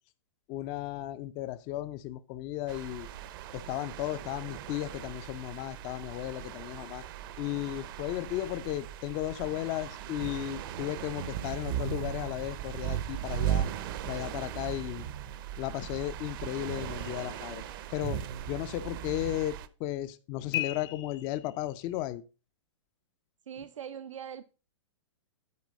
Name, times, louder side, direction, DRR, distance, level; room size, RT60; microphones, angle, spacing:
voice 1, 0.5-3.1 3.5-7.0 7.4-13.7 14.1-15.1 15.6-17.6 17.9-18.2 18.5-22.2, left 14 dB, 30° left, 12 dB, 0.4 m, -35 dB
sound 1, 2.7-19.7, right 11 dB, 45° right, 0.7 m, -38 dB
sound 2, 17.0-18.2 20.5-22.0, left 15 dB, 50° left, 0.8 m, -39 dB
voice 2, 23.5-24.4, right 8 dB, 90° right, 11 dB, 0.6 m, -41 dB
9.5 x 4.5 x 5.2 m, 0.33 s
hypercardioid pair, 140°, 16 cm